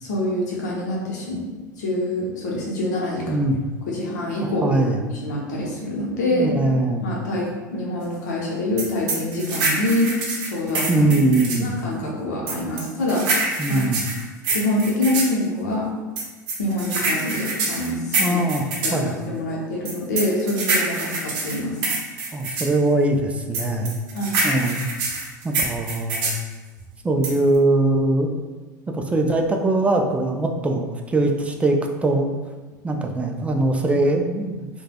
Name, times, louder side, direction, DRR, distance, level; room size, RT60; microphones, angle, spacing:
voice 1, 0.0-1.4 1.8-3.4 3.9-4.8 5.2-6.5 7.0-10.1 10.4-11.1 11.6-13.8 14.5-15.9 16.6-18.4 18.8-19.0 19.3-21.8 24.1-24.4, left 1 dB, 70° left, -3 dB, 0.7 m, -25 dB
voice 2, 4.4-5.0 6.3-7.1 10.9-11.7 13.6-14.0 18.2-18.6 18.9-19.1 22.3-23.9 24.4-24.9 25.4-26.4 27.0-28.3 28.9-31.8 32.0-32.3 32.8-34.7, right 2 dB, 15° right, 3 dB, 0.3 m, -21 dB
sound 1, 8.8-11.7 12.5-15.3 16.2-19.0 19.8-22.7 23.5-26.4 27.2-27.6, right 3 dB, 50° right, 0.7 m, -25 dB
3.2 x 2.2 x 2.3 m, 1.3 s
figure-of-eight pair, 80°, 10 cm